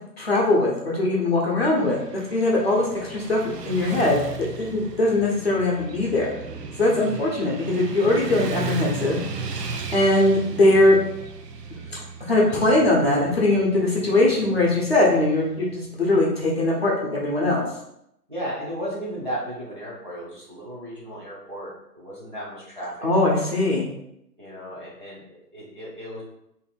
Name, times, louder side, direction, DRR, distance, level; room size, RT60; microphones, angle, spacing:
voice 1, 0.2-2.0 2.3-3.4 3.6-4.2 4.5-6.3 6.8-9.2 9.5-9.6 9.9-11.0 12.3-17.7 23.0-23.9, left 2 dB, 40° left, -2 dB, 0.7 m, -21 dB
Motorcycle / Traffic noise roadway noise, 1.8-15.9, right 5 dB, 75° right, 0.6 m, -36 dB
voice 2, 18.3-23.1 24.4-26.2, equal, 30° right, -7 dB, 0.5 m, -35 dB
2.6 x 2.4 x 4.0 m, 0.80 s
hypercardioid pair, 165°, 50 cm